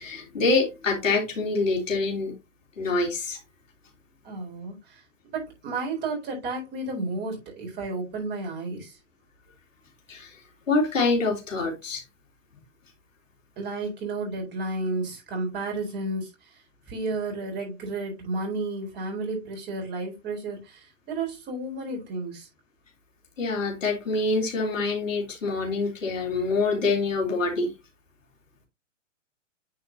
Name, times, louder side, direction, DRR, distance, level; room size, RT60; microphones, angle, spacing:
voice 1, 0.0-2.3 2.8-3.4 10.1-10.4 10.7-12.0 23.4-27.7, left 3 dB, 85° left, 3.3 m, -25 dB
voice 2, 4.2-9.0 13.6-22.5, right 3 dB, 25° right, 4.0 m, -32 dB
9.4 x 4.9 x 2.8 m
hypercardioid pair, 125°, 38 cm